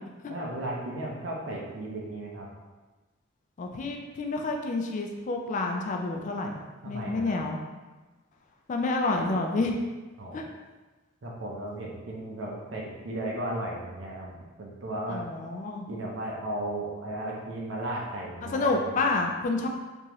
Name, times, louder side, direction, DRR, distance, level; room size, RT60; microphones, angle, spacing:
voice 1, 0.3-2.5 6.8-7.4 10.2-10.4 11.2-15.2 15.9-19.1, right 1 dB, 80° right, -3 dB, 0.7 m, -35 dB
voice 2, 3.6-6.6 6.9-7.6 8.7-9.7 10.3-10.4 15.1-15.9 18.5-19.7, left 3 dB, 40° left, 2 dB, 0.3 m, -29 dB
3.5 x 2.8 x 2.9 m, 1.2 s
head